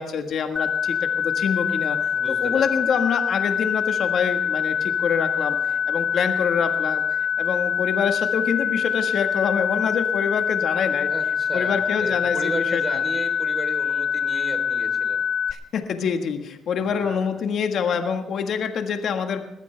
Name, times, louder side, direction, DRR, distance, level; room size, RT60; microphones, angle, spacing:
voice 1, 0.0-2.0 2.3-11.1 11.5-13.0 15.5-19.4, left 6 dB, 65° left, 6 dB, 1.5 m, -26 dB
sound 1, 0.6-15.5, left 7 dB, 50° left, 0.9 m, -24 dB
voice 2, 2.1-2.9 11.1-15.2 16.8-17.3, right 3 dB, 30° right, 7 dB, 3.5 m, -34 dB
21.0 x 14.5 x 3.4 m, 0.92 s
cardioid pair, 90°, 0 cm